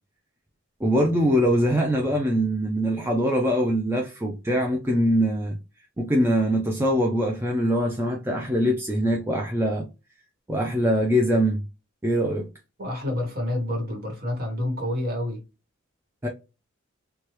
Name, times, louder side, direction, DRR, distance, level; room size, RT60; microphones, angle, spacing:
voice 1, 0.8-5.6 6.0-9.9 10.5-11.6 12.0-12.5 16.2-16.3, equal, 10° right, 0.4 m, -23 dB
voice 2, 12.8-15.4, left 1 dB, 45° right, 1.2 m, -28 dB
2.9 x 2.2 x 3.1 m
head